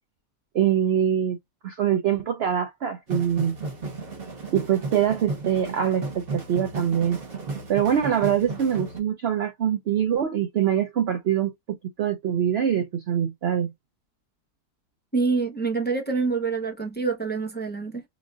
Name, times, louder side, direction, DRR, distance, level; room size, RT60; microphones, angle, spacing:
voice 1, 0.5-1.4 1.6-3.6 4.5-7.2 7.7-13.7, right 9 dB, 65° right, 0.6 m, -24 dB
sound 1, 3.1-9.0, right 3 dB, 40° right, 1.3 m, -34 dB
voice 2, 15.1-18.0, right 4 dB, 10° left, 0.7 m, -26 dB
4.9 x 2.5 x 2.3 m
omnidirectional pair, 1.5 m